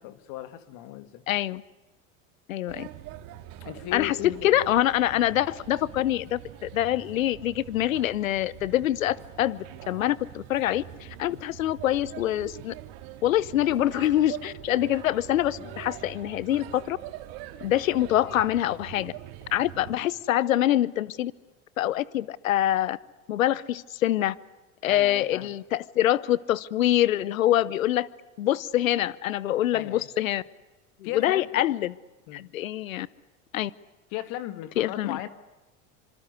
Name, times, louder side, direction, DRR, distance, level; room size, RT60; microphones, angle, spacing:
voice 1, 0.0-1.2 2.7-2.8 3.6-4.6 8.6-8.7 11.3-11.4 15.6-15.8 24.9-25.5 29.7-30.1 31.0-31.6 32.3-32.4 34.1-35.3, left 13 dB, 60° left, 10 dB, 2.2 m, -37 dB
voice 2, 1.3-1.6 2.5-2.9 3.9-12.7 13.2-17.0 17.6-19.1 19.5-21.3 21.8-23.0 23.3-24.3 24.8-28.1 28.4-30.4 31.1-32.0 32.3-33.1 33.5-33.7 34.8-35.2, left 13 dB, 85° left, 20 dB, 0.9 m, -25 dB
Male speech man speaking / Child speech kid speaking / Chatter, 2.7-20.0, right 13 dB, 60° right, 2.6 m, -43 dB
26.0 x 25.5 x 8.2 m, 1.1 s
hypercardioid pair, 90°, 39 cm